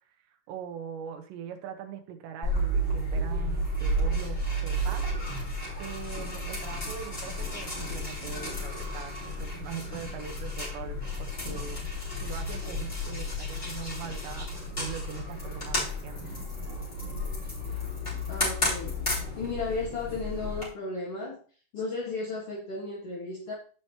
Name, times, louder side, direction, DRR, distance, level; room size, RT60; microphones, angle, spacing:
voice 1, 0.5-5.0 5.8-16.3, right 7 dB, 75° right, 4 dB, 3.3 m, -41 dB
sound 1, 2.4-20.7, equal, 15° left, 2.5 m, -32 dB
voice 2, 18.3-19.0 19.4-21.4 21.7-23.5, left 3 dB, 55° left, -5 dB, 1.6 m, -34 dB
15.0 x 5.2 x 2.9 m, 0.41 s
omnidirectional pair, 5.2 m